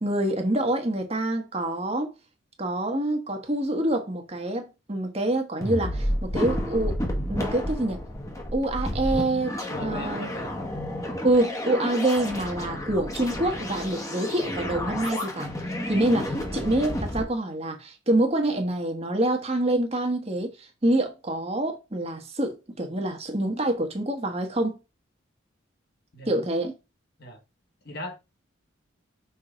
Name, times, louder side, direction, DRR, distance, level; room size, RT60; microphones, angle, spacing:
voice 1, 0.0-2.1 2.6-6.9 7.3-8.0 8.5-10.3 11.2-15.5 15.9-24.8 26.3-26.7, right 1 dB, 30° right, 1.2 m, -26 dB
sound 1, 5.6-17.2, left 1 dB, 15° left, 1.1 m, -31 dB
voice 2, 9.7-10.5 26.1-26.5 27.2-27.4 27.8-28.2, left 1 dB, 50° left, 1.5 m, -38 dB
5.9 x 3.7 x 5.0 m
head